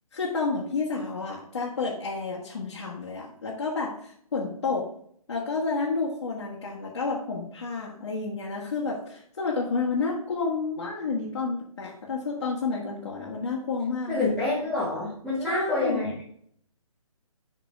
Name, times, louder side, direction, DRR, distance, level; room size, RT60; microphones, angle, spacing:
voice 1, 0.1-4.9 5.3-14.3 15.4-16.1, left 4 dB, 50° left, -4 dB, 1.7 m, -30 dB
voice 2, 14.1-16.2, left 2 dB, ahead, -12 dB, 0.8 m, -27 dB
5.8 x 5.4 x 4.9 m, 0.64 s
hypercardioid pair, 170°, 19 cm